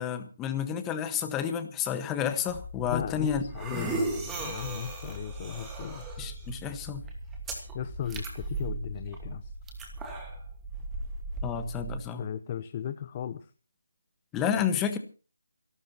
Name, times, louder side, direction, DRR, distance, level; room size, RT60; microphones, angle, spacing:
voice 1, 0.0-3.4 3.7-4.0 6.2-7.0 11.4-12.2 14.3-15.0, left 8 dB, 10° left, 9 dB, 1.3 m, -30 dB
sound 1, 2.5-12.0, right 3 dB, 10° right, 2.5 m, -37 dB
voice 2, 2.8-6.1 7.7-9.5 12.2-13.5, left 9 dB, 25° left, 11 dB, 0.7 m, -37 dB
28.5 x 12.5 x 2.9 m, 0.35 s
figure-of-eight pair, 165°, 0 cm